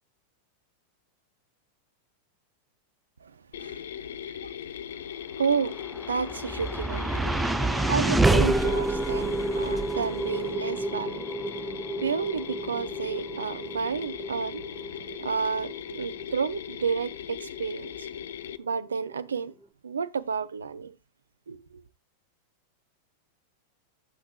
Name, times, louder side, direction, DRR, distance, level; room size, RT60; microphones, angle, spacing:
voice 1, 3.2-4.5 4.9-5.0 5.4-7.1 7.6-11.3 11.6-14.7 15.2-18.1 18.6-19.5 19.8-20.9 21.5-21.8, right 5 dB, 70° right, 0.6 m, -31 dB
Mechanisms, 3.5-18.6, left 9 dB, 60° left, 0.5 m, -39 dB
sound 1, 5.7-18.0, right 2 dB, 5° right, 0.5 m, -29 dB
15.5 x 7.9 x 2.3 m
figure-of-eight pair, 90°, 0 cm